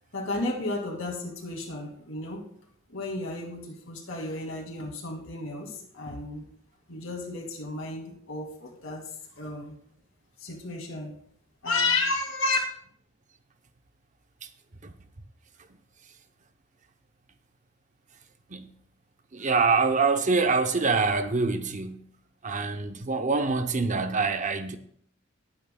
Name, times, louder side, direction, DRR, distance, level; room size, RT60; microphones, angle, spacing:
voice 1, 0.1-2.4 2.9-6.4 6.9-9.0 9.4-9.8 10.4-11.1 11.6-12.6, left 3 dB, 70° left, 2.3 m, -32 dB
voice 2, 19.3-22.0 22.4-24.8, right 4 dB, 35° right, 0.8 m, -25 dB
19.5 x 8.9 x 2.3 m
head